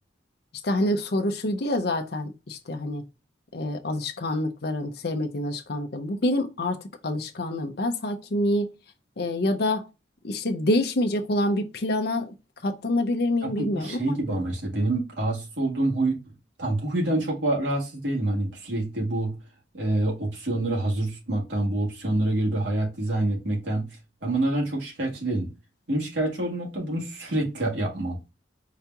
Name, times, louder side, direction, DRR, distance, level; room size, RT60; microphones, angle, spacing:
voice 1, 0.6-3.0 3.5-6.8 7.0-8.7 9.2-9.9 10.2-12.2 12.6-14.2, left 1 dB, 60° left, 0.6 m, -26 dB
voice 2, 13.4-16.2 16.6-19.4 19.7-23.9 24.2-25.5 25.9-28.2, right 2 dB, 85° right, 2.0 m, -27 dB
4.8 x 2.9 x 3.4 m
head